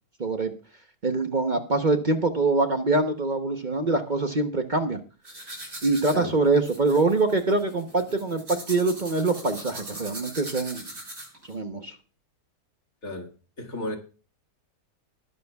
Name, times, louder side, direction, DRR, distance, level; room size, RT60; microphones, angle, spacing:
voice 1, 0.2-0.5 1.0-5.0 5.8-10.9 11.5-11.9, right 3 dB, 35° right, 0.9 m, -24 dB
sound 1, 5.2-11.5, right 1 dB, 85° right, 6.9 m, -40 dB
voice 2, 13.6-14.0, left 1 dB, 55° left, 2.5 m, -32 dB
21.0 x 11.0 x 2.4 m
omnidirectional pair, 1.8 m